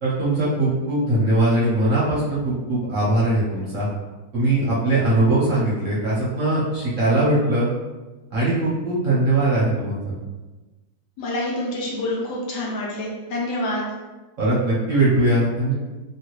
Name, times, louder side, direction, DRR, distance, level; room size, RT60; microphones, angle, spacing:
voice 1, 0.0-3.9 4.3-7.7 8.3-10.2 14.4-15.7, right 2 dB, 50° right, -8 dB, 1.0 m, -20 dB
voice 2, 11.2-13.8, left 1 dB, 70° left, -3 dB, 1.3 m, -27 dB
2.9 x 2.8 x 3.1 m, 1.2 s
omnidirectional pair, 1.9 m